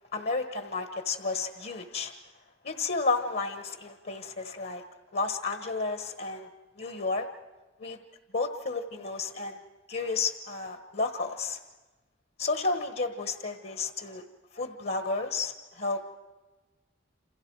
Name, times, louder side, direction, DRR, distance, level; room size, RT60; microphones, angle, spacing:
voice 1, 0.1-2.1 2.6-4.8 5.1-6.5 6.8-7.3 7.8-8.0 8.3-9.6 9.9-11.6 12.4-14.2 14.5-16.1, left 3 dB, 55° left, 7 dB, 1.3 m, -32 dB
29.0 x 27.5 x 4.7 m, 1.2 s
head